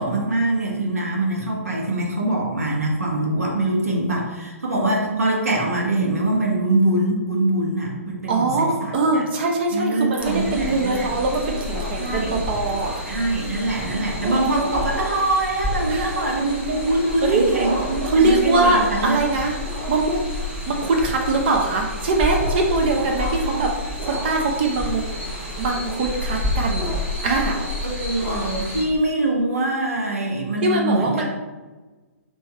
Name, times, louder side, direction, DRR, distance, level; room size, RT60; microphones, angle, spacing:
voice 1, 0.0-9.2 9.7-11.1 12.0-12.4 13.1-19.2 22.9-23.1 23.4-23.6 27.8-31.3, right 2 dB, 75° right, -1 dB, 1.2 m, -23 dB
voice 2, 8.3-12.9 15.9-16.1 17.2-17.5 18.0-19.6 19.9-20.2 20.7-23.7 24.0-25.1 25.3-26.9 27.2-27.6 30.6-31.3, right 3 dB, 45° right, 2 dB, 0.6 m, -22 dB
sound 1, 10.2-28.8, left 1 dB, 15° right, 0.9 m, -29 dB
3.3 x 3.2 x 4.3 m, 1.2 s
figure-of-eight pair, 125°, 8 cm